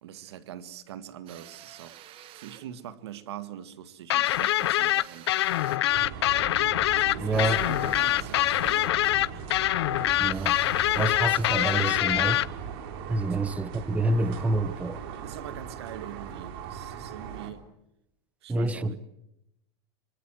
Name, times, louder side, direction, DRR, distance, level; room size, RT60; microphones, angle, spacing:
voice 1, 0.0-2.1 2.3-5.3 7.1-9.6 13.3-13.5 15.2-17.7 18.4-19.0, right 10 dB, 90° right, 1.9 m, -43 dB
sound 1, 1.3-2.7 4.2-5.9 7.3-9.0 10.3-12.1, right 12 dB, 45° right, 2.0 m, -48 dB
sound 2, 4.1-12.5, left 15 dB, 90° left, 0.9 m, -24 dB
sound 3, 5.9-17.5, right 7 dB, 70° right, 3.8 m, -39 dB
voice 2, 7.2-7.6 10.2-10.6 11.0-12.4 13.1-15.0 18.5-18.9, right 2 dB, 10° right, 1.2 m, -27 dB
26.5 x 24.0 x 7.8 m
supercardioid pair, 135°, 13 cm